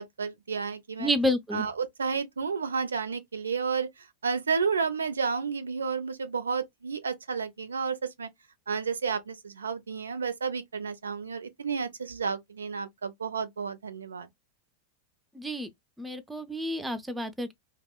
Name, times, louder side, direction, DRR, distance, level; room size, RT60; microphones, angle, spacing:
voice 1, 0.0-1.1 1.5-8.3 8.7-14.3, right 5 dB, 70° right, 0.4 m, -31 dB
voice 2, 1.0-1.6 15.3-15.7 16.0-17.5, equal, 5° right, 0.4 m, -29 dB
2.8 x 2.0 x 2.3 m
figure-of-eight pair, 90°, 0 cm